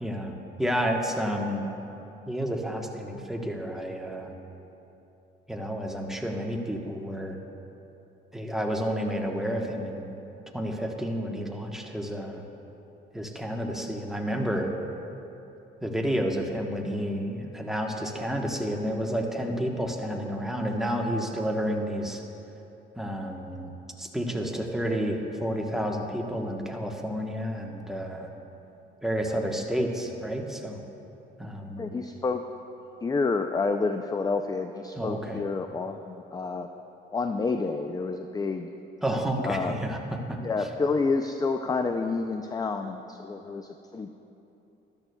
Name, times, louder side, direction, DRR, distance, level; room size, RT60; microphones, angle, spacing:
voice 1, 0.0-1.7 2.3-4.3 5.5-7.4 8.3-10.2 10.5-12.4 13.1-14.7 15.8-22.2 23.0-23.7 24.0-28.3 29.0-30.8 31.4-31.9 35.0-35.4 39.0-40.4, equal, ahead, 1 dB, 1.1 m, -30 dB
voice 2, 31.8-32.4 33.0-36.7 37.1-38.8 39.4-39.8 40.4-44.1, left 4 dB, 20° left, 6 dB, 0.4 m, -29 dB
13.0 x 12.5 x 2.3 m, 2.9 s
cardioid pair, 90°, 20 cm